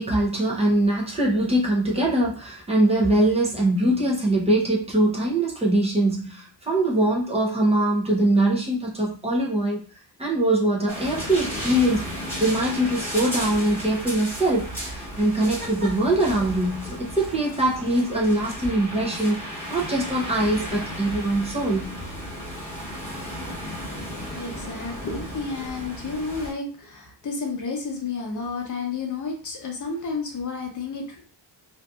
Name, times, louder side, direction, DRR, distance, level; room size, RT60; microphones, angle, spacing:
voice 1, 0.0-9.8 10.2-21.9, right 1 dB, 15° right, -3 dB, 0.6 m, -22 dB
sound 1, 10.9-26.5, equal, 5° left, 1.3 m, -34 dB
voice 2, 24.3-31.2, left 4 dB, 40° left, 0 dB, 0.7 m, -31 dB
2.7 x 2.4 x 2.3 m, 0.39 s
wide cardioid pair, 175°, 45 cm